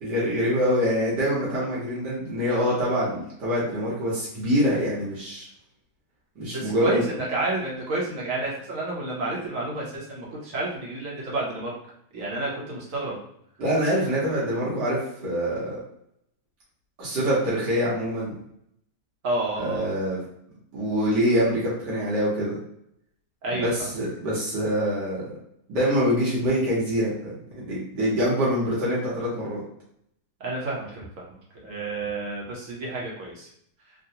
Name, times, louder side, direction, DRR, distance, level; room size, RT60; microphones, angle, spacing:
voice 1, 0.0-5.5 6.4-7.0 13.6-15.8 17.0-18.3 19.6-20.2 20.7-22.6 23.5-25.4 25.7-29.6, equal, 80° right, -8 dB, 1.7 m, -25 dB
voice 2, 6.5-11.7 12.1-13.2 19.2-19.9 23.4-23.9 30.4-31.3 31.6-33.5, right 2 dB, 55° right, -4 dB, 1.2 m, -30 dB
3.7 x 2.2 x 2.7 m, 0.72 s
omnidirectional pair, 1.8 m